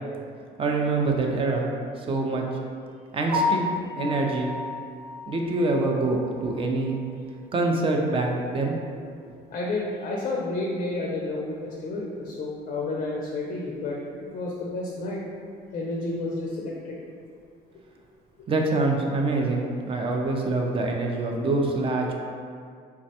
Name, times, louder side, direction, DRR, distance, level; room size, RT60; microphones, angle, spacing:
voice 1, 0.6-1.7 2.0-2.4 3.1-3.7 4.0-4.5 5.3-7.0 7.5-8.8 18.5-22.1, right 2 dB, 35° right, 1 dB, 0.4 m, -25 dB
Piano, 3.3-7.3 7.6-7.8 8.2-8.3 8.7-8.8 11.9-12.0 20.5-20.7, left 2 dB, 70° right, 0.8 m, -32 dB
voice 2, 9.5-15.2 15.7-17.0, left 2 dB, 45° left, -2 dB, 0.4 m, -31 dB
3.4 x 2.1 x 2.7 m, 2.2 s
cardioid pair, 110°, 17 cm